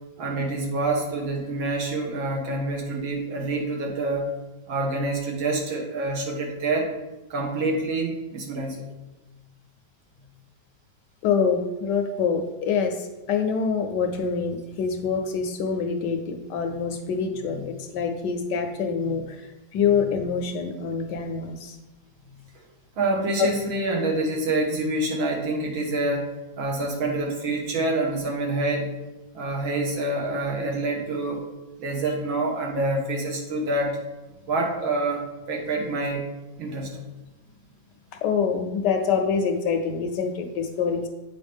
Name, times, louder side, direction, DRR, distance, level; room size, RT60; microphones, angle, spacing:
voice 1, 0.2-4.3 4.7-6.9 7.3-8.8 16.7-16.8 17.5-17.7 19.0-19.1 19.9-20.0 23.0-26.3 26.6-28.9 29.3-31.4 31.8-34.0 34.5-36.3 36.6-36.9, right 2 dB, 80° right, -1 dB, 2.0 m, -27 dB
voice 2, 11.2-19.4 19.7-21.8 23.4-23.5 38.2-41.1, left 6 dB, 70° left, 5 dB, 1.1 m, -25 dB
8.1 x 4.5 x 3.4 m, 1.1 s
omnidirectional pair, 2.1 m